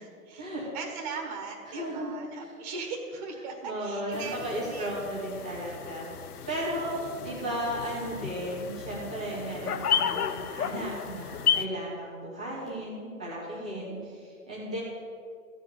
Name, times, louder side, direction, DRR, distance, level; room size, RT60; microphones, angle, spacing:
voice 1, 0.0-5.0 6.8-8.1 13.5-13.9 14.3-14.5, right 4 dB, 25° right, 2 dB, 1.2 m, -40 dB
voice 2, 1.7-2.1 3.6-7.0 7.2-14.8, right 1 dB, 5° right, -9 dB, 0.4 m, -35 dB
sound 1, 4.1-11.7, left 8 dB, 75° left, 0.8 m, -33 dB
13.5 x 4.9 x 7.5 m, 2.3 s
hypercardioid pair, 145°, 46 cm